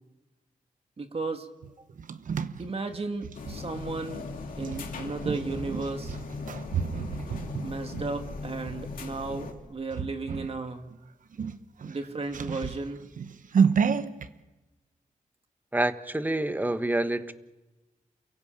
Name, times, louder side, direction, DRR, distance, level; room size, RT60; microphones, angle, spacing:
voice 1, 1.0-1.5 2.6-4.3 4.6-6.2 7.6-10.9 11.8-13.0, right 3 dB, 45° right, 6 dB, 2.0 m, -34 dB
sound 1, 1.6-3.6 4.6-8.8 9.3-9.5 9.9-10.6 10.9-11.0 11.3-14.3, right 6 dB, 70° right, 1.0 m, -30 dB
sound 2, 3.3-9.5, left 4 dB, 90° left, 2.7 m, -39 dB
voice 2, 15.7-17.3, right 1 dB, 15° right, 10 dB, 1.4 m, -27 dB
29.0 x 16.0 x 8.8 m, 1.1 s
cardioid pair, 70°, 14 cm